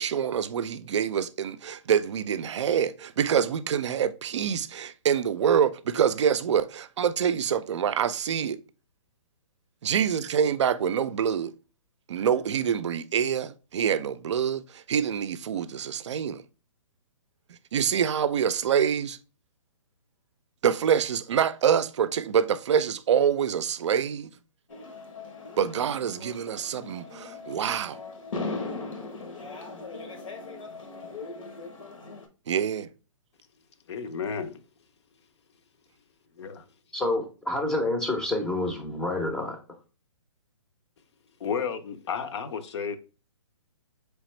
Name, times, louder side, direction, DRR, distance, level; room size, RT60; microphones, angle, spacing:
voice 1, 0.0-8.6 9.8-11.5 12.1-16.4 17.7-19.2 20.6-24.3 25.6-28.0 32.5-32.9, right 8 dB, 60° right, 0.4 m, -26 dB
sound 1, 24.7-32.3, left 3 dB, 75° left, 1.1 m, -39 dB
voice 2, 33.9-34.6 36.4-36.6 41.4-43.0, left 6 dB, 55° left, 0.6 m, -32 dB
voice 3, 36.9-39.6, left 2 dB, 5° left, 0.5 m, -28 dB
4.1 x 3.4 x 3.1 m
hypercardioid pair, 145°, 17 cm